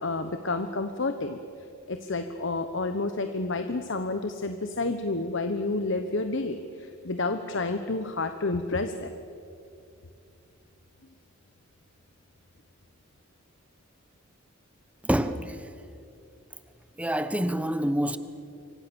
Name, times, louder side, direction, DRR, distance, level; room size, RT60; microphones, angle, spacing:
voice 1, 0.0-1.4 1.9-9.1, left 3 dB, 60° left, 1.1 m, -30 dB
voice 2, 15.0-15.7 17.0-18.2, equal, 5° right, 1.0 m, -27 dB
28.5 x 24.5 x 7.1 m
head